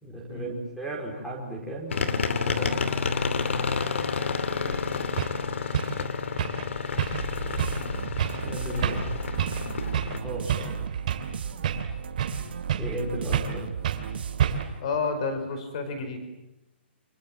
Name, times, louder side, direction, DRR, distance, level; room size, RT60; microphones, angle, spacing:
voice 1, 0.0-2.9 8.4-9.1 10.2-10.6 12.8-13.7, right 1 dB, ahead, -6 dB, 4.5 m, -35 dB
sound 1, 1.9-10.2, left 5 dB, 85° left, 2.6 m, -30 dB
voice 2, 4.5-5.1 10.3-10.7 14.8-16.2, left 4 dB, 35° left, 8 dB, 5.4 m, -32 dB
sound 2, 4.7-4.8 5.2-5.4 5.7-6.0 6.4-6.7 7.0-7.3 7.6-7.8 8.2-8.4 8.8-9.1 9.4-9.6 9.9-10.2 10.5-11.3 11.6-12.4 12.7-13.0 13.3-13.6 13.8-14.1 14.4-14.8, right 9 dB, 35° right, 2.8 m, -28 dB
sound 3, 7.1-14.8, right 7 dB, 55° right, 2.1 m, -35 dB
28.5 x 27.0 x 7.5 m, 0.92 s
hypercardioid pair, 180°, 7 cm